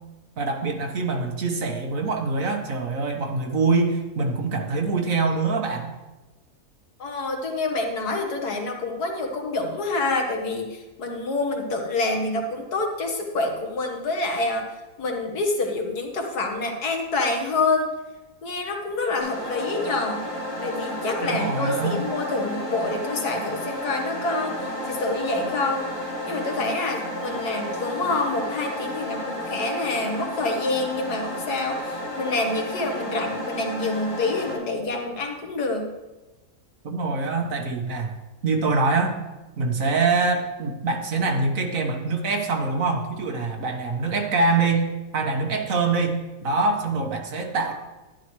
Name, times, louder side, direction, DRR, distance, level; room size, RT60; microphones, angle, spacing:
voice 1, 0.4-5.9 21.2-22.0 36.8-38.1 38.4-39.2 39.6-47.7, right 3 dB, 60° right, 3 dB, 1.5 m, -24 dB
voice 2, 7.0-14.7 15.0-17.9 18.4-20.2 20.6-35.9, left 2 dB, 85° left, 3 dB, 1.9 m, -27 dB
sound 1, 19.2-34.5, left 1 dB, 10° right, 4.0 m, -32 dB
11.5 x 10.5 x 3.1 m, 1.1 s
omnidirectional pair, 1.6 m